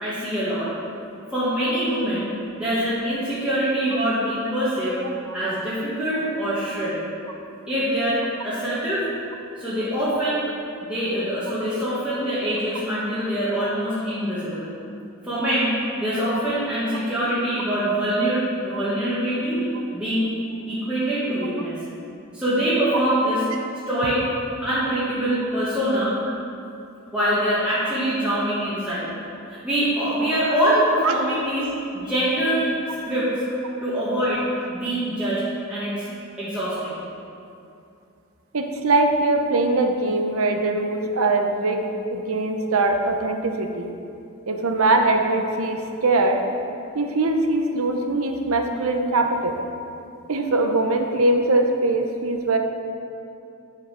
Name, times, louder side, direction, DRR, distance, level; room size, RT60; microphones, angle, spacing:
voice 1, 0.0-0.7 1.3-5.0 5.3-7.0 7.7-9.0 9.6-10.5 10.8-14.7 15.2-15.7 16.0-19.6 19.9-20.3 20.7-21.7 22.3-23.4 23.9-24.2 24.6-26.1 27.1-29.1 29.5-32.8 33.0-33.3 33.8-35.4 35.7-36.0 36.4-37.0, right 1 dB, 5° right, -12 dB, 1.9 m, -24 dB
voice 2, 38.5-41.8 42.1-43.9 44.5-46.4 46.9-49.5 50.3-52.6, right 2 dB, 75° right, 4 dB, 0.8 m, -22 dB
9.7 x 5.6 x 5.0 m, 2.6 s
head